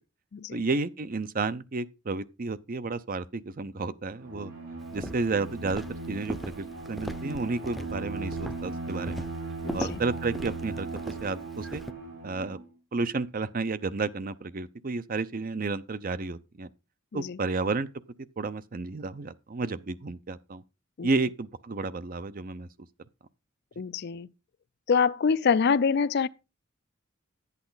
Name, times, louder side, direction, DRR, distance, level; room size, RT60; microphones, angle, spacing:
voice 1, 0.5-4.5 4.9-9.3 9.7-11.8 12.2-12.6 12.9-16.7 17.1-17.9 18.4-20.6 21.0-22.7, right 3 dB, 45° right, 0.6 m, -31 dB
Bowed string instrument, 4.1-12.6, right 3 dB, 70° right, 5.1 m, -38 dB
Walk footsteps, 4.9-11.9, equal, ahead, 0.6 m, -40 dB
voice 2, 9.6-10.0 17.1-17.4 21.0-21.1 23.8-24.3 24.9-26.3, left 5 dB, 55° left, 0.4 m, -25 dB
11.5 x 8.3 x 4.0 m
head